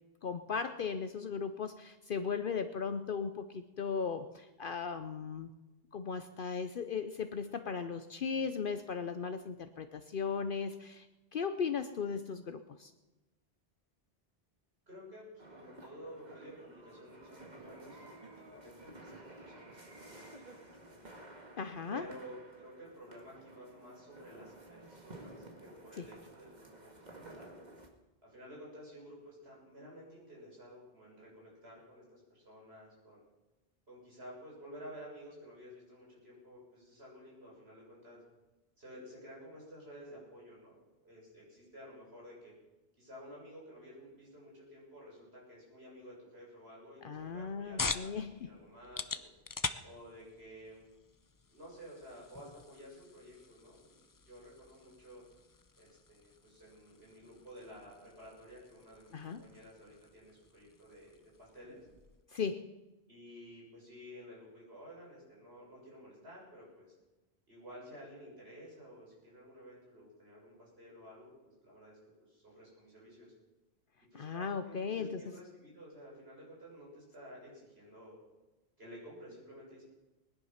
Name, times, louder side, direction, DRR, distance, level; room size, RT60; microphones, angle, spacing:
voice 1, 0.2-5.5 5.9-11.1 11.3-12.9 21.6-22.0 26.0-26.1 47.0-48.5 59.1-59.5 62.3-62.7 74.1-75.2, left 6 dB, 60° left, 9 dB, 0.9 m, -37 dB
voice 2, 14.9-18.2 18.5-21.2 21.9-27.5 28.2-33.2 33.9-38.2 38.8-42.5 43.0-49.3 49.8-50.9 51.5-55.2 55.8-61.9 63.1-66.9 67.5-73.3 74.1-78.2 78.8-79.8, equal, 80° right, -4 dB, 7.2 m, -52 dB
sound 1, 15.4-27.9, right 2 dB, 45° right, 2.0 m, -53 dB
sound 2, 47.1-62.3, left 4 dB, 30° left, 0.4 m, -45 dB
20.5 x 11.0 x 5.8 m, 1.1 s
omnidirectional pair, 1.0 m